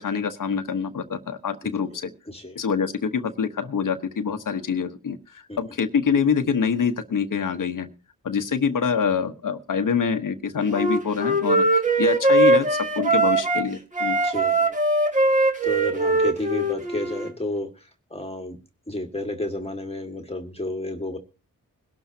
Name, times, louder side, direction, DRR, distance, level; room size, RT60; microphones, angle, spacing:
voice 1, 0.0-2.1 2.5-7.9 8.2-11.6 12.0-14.2, left 6 dB, 75° left, 8 dB, 1.2 m, -25 dB
voice 2, 2.3-2.6 5.5-5.6 14.2-14.8 15.2-18.6 18.9-21.2, left 1 dB, 20° left, 4 dB, 1.8 m, -32 dB
Wind instrument woodwind instrument, 10.7-13.6 13.9-17.3, right 2 dB, 25° right, 2.1 m, -21 dB
22.0 x 12.0 x 2.8 m, 0.31 s
cardioid pair, 75°, 32 cm